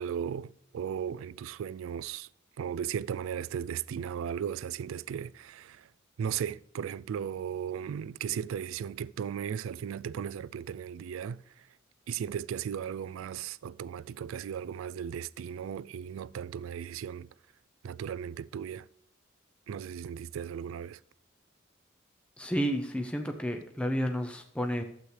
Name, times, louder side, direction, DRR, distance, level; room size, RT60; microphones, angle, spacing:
voice 1, 0.0-2.3 2.6-5.9 6.2-11.7 12.1-17.3 17.8-18.9 19.7-21.0, right 8 dB, 75° right, 0.3 m, -36 dB
voice 2, 22.4-24.8, equal, 5° left, 0.6 m, -31 dB
12.0 x 8.1 x 3.3 m
head